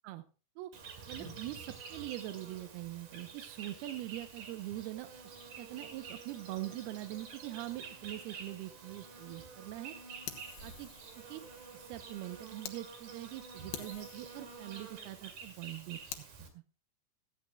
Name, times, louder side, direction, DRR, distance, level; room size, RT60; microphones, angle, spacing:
Insect, 0.7-16.5, right 5 dB, 50° right, 3.2 m, -49 dB
voice 1, 1.1-9.9 10.6-10.9 11.3-11.4 11.7-16.3, right 15 dB, 85° right, 10 dB, 2.2 m, -43 dB
Fire, 10.3-12.8 13.2-13.3 13.7-16.3, left 11 dB, 70° left, 2.9 m, -49 dB
16.0 x 14.5 x 2.2 m, 0.35 s
omnidirectional pair, 5.4 m